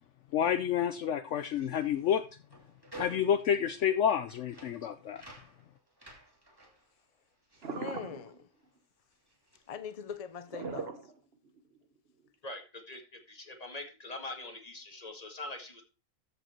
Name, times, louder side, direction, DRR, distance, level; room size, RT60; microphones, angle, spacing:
voice 1, 0.3-2.2 3.0-5.2, left 9 dB, 65° left, 0.9 m, -29 dB
sound 1, 1.3-8.8 9.0-10.5, right 3 dB, 15° right, 2.5 m, -54 dB
voice 2, 7.6-8.5 9.7-11.1, left 7 dB, 50° left, 0.4 m, -42 dB
sound 2, 7.6-8.4 10.5-11.6 12.3-12.4, right 4 dB, 50° right, 1.3 m, -39 dB
voice 3, 12.4-15.8, left 2 dB, 30° left, 1.9 m, -43 dB
14.0 x 5.3 x 4.4 m
omnidirectional pair, 1.4 m